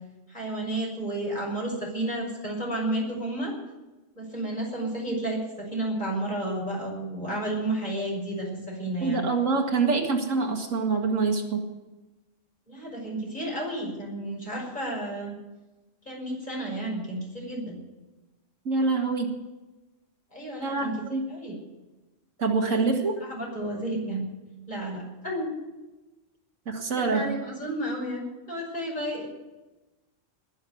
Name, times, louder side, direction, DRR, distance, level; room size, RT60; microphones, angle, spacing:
voice 1, 0.3-3.5 4.1-9.2 12.7-15.4 16.0-17.8 20.3-20.9 21.3-21.5 22.7-22.8 23.2-24.3 24.7-25.5 27.1-29.3, right 1 dB, 35° left, -2 dB, 6.1 m, -32 dB
voice 2, 9.0-11.6 18.6-19.3 20.6-21.3 22.4-23.2 26.7-27.3, right 4 dB, 80° right, 3 dB, 2.4 m, -25 dB
20.5 x 7.3 x 9.3 m, 1.1 s
omnidirectional pair, 1.3 m